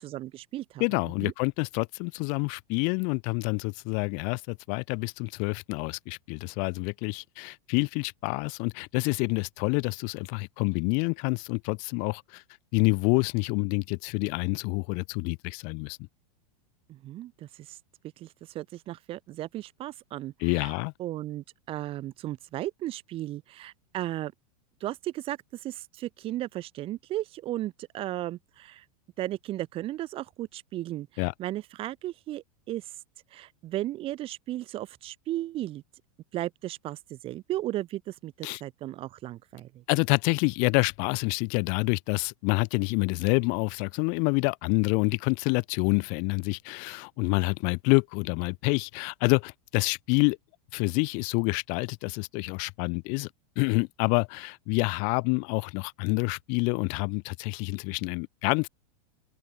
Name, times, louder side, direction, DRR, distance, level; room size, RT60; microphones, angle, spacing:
voice 1, 0.0-1.3 16.9-17.8 18.2-24.3 24.8-28.8 29.2-32.9 33.3-35.8 36.3-39.8, right 14 dB, 30° right, 4.2 m, -35 dB
voice 2, 0.8-12.4 12.7-16.0 20.4-20.9 31.2-31.3 38.4-38.6 39.9-50.4 50.7-53.3 53.6-58.7, left 36 dB, 40° left, 2.4 m, -27 dB
open air
supercardioid pair, 160°, 19 cm